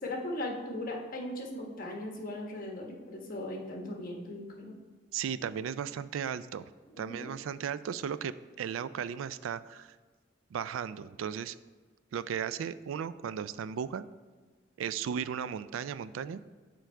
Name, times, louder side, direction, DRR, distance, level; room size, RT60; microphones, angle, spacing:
voice 1, 0.0-4.7 6.9-7.3, left 1 dB, 45° left, 0 dB, 1.2 m, -38 dB
voice 2, 5.1-6.7 7.0-10.0 10.5-11.6 12.1-14.0 14.8-16.5, right 8 dB, 85° right, 15 dB, 0.3 m, -36 dB
6.9 x 4.6 x 4.4 m, 1.4 s
head